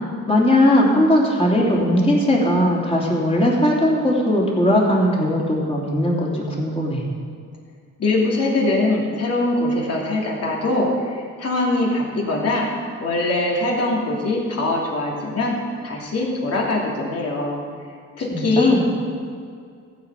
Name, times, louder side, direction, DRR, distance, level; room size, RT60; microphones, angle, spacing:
voice 1, 0.3-7.0 18.3-18.8, left 1 dB, 20° left, -3 dB, 3.1 m, -18 dB
voice 2, 8.0-12.7 13.0-15.6 15.8-17.6 18.2-18.8, left 2 dB, 55° left, -2 dB, 3.1 m, -22 dB
14.5 x 5.1 x 8.3 m, 2.2 s
cardioid pair, 90°, 30 cm